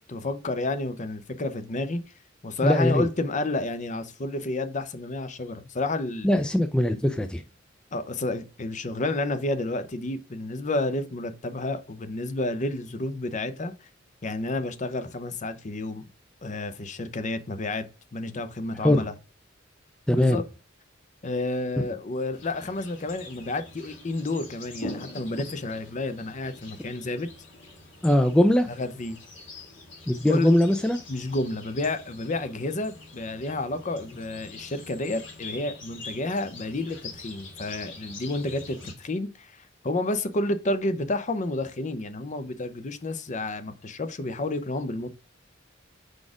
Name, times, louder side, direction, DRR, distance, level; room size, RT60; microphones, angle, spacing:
voice 1, 0.1-2.0 2.4-6.3 7.9-13.7 14.2-16.1 16.4-17.9 18.1-19.1 20.1-20.4 21.2-27.3 28.7-29.2 30.3-30.5 31.1-39.6 39.8-45.1, left 2 dB, 40° left, 0.7 m, -30 dB
voice 2, 2.6-3.1 6.2-7.4 18.8-19.0 20.1-20.4 28.0-28.7 30.1-31.0, left 1 dB, 5° left, 0.3 m, -21 dB
sound 1, 22.3-38.9, left 2 dB, 70° left, 2.4 m, -44 dB
4.8 x 4.2 x 4.8 m
head